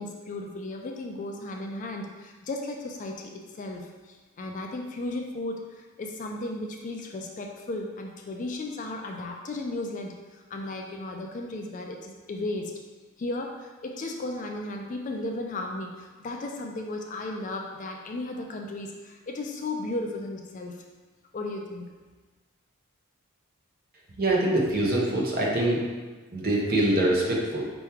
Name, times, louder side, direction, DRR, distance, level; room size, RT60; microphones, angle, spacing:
voice 1, 0.0-3.3 3.6-12.7 13.2-20.7 21.3-21.9, left 2 dB, 35° left, 2 dB, 0.3 m, -35 dB
voice 2, 24.2-25.8 26.3-27.6, right 1 dB, 40° right, -3 dB, 0.8 m, -24 dB
4.6 x 3.0 x 3.4 m, 1.3 s
head